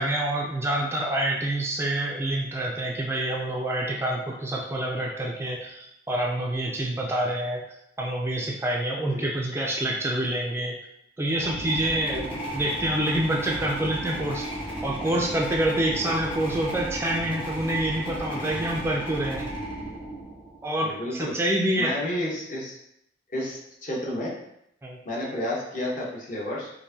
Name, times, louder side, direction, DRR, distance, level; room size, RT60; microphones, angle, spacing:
voice 1, 0.0-7.6 8.0-10.7 11.2-14.5 14.8-19.5 20.6-21.9 24.8-25.0, right 1 dB, 15° right, -2 dB, 0.4 m, -27 dB
sound 1, 11.3-20.7, right 1 dB, 30° left, 1.5 m, -34 dB
voice 2, 20.8-21.3 21.8-22.8 23.3-24.3 25.0-26.7, left 1 dB, 45° left, -4 dB, 1.0 m, -31 dB
4.5 x 2.6 x 2.7 m, 0.78 s
head